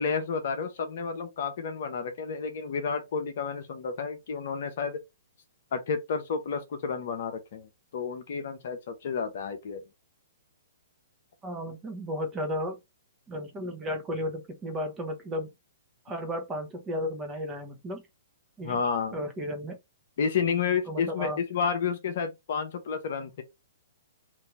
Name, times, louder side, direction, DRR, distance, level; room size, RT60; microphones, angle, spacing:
voice 1, 0.0-5.0 5.7-9.8 18.6-19.2 20.2-23.4, left 6 dB, 55° left, 0.8 m, -31 dB
voice 2, 11.4-12.8 13.3-15.5 16.1-18.0 18.6-18.8 19.1-19.8 20.9-21.4, left 1 dB, 20° right, 1.0 m, -34 dB
2.8 x 2.7 x 3.4 m
figure-of-eight pair, 120°, 0 cm